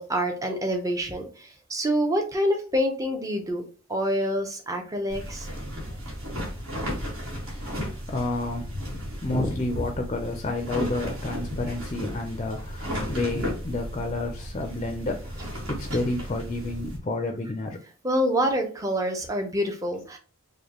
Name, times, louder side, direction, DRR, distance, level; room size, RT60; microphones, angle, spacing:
voice 1, 0.0-3.6 3.9-5.5 9.3-9.5 18.0-20.2, equal, 15° right, 3 dB, 0.6 m, -26 dB
sound 1, 5.1-17.0, equal, 70° right, 1.6 m, -34 dB
voice 2, 8.1-17.8, left 2 dB, 30° left, 4 dB, 0.5 m, -30 dB
4.9 x 2.2 x 2.9 m, 0.38 s
head